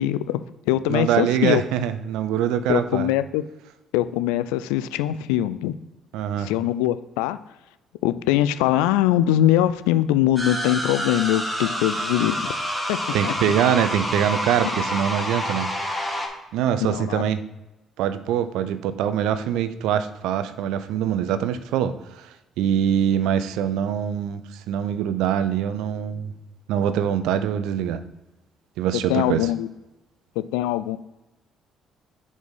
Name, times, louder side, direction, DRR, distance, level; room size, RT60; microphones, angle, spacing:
voice 1, 0.0-1.6 2.7-3.4 3.9-5.7 6.4-7.4 8.0-12.5 12.9-13.0 13.2-13.3 16.8-17.2 28.9-29.7 30.4-31.0, left 13 dB, 85° left, 13 dB, 0.3 m, -22 dB
voice 2, 0.9-3.1 6.1-6.5 13.1-15.7 16.5-17.4 18.0-26.3 26.7-28.0 28.8-29.5, right 9 dB, 80° right, 11 dB, 0.5 m, -24 dB
sound 1, 10.4-16.3, equal, ahead, 1.5 m, -28 dB
4.7 x 4.1 x 5.4 m, 0.99 s
supercardioid pair, 60°, 0 cm